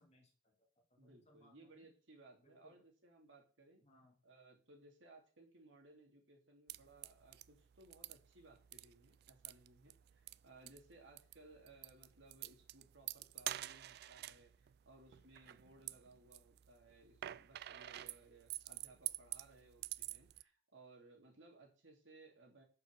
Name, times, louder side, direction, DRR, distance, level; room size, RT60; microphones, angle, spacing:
voice 1, 0.0-1.9 2.4-2.8 3.8-4.2, left 1 dB, 35° left, 2 dB, 2.2 m, -69 dB
voice 2, 1.0-3.8 4.2-22.6, right 2 dB, 75° right, 1 dB, 2.6 m, -63 dB
sound 1, 6.7-20.4, right 15 dB, 55° right, 0.3 m, -49 dB
6.6 x 5.5 x 6.5 m, 0.38 s
head